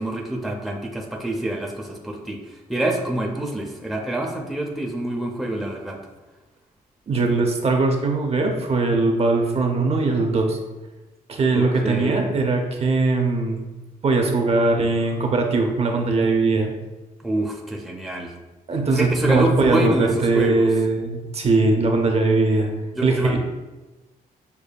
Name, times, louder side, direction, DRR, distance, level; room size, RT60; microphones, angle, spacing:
voice 1, 0.0-6.0 11.5-12.2 17.2-18.3 18.9-20.7 22.9-23.4, right 1 dB, ahead, 0 dB, 0.5 m, -26 dB
voice 2, 7.1-10.6 11.3-13.6 14.0-16.7 18.7-22.7 23.0-23.4, right 3 dB, 40° right, 2 dB, 0.6 m, -20 dB
6.7 x 2.7 x 2.2 m, 1.1 s
cardioid pair, 100°, 15 cm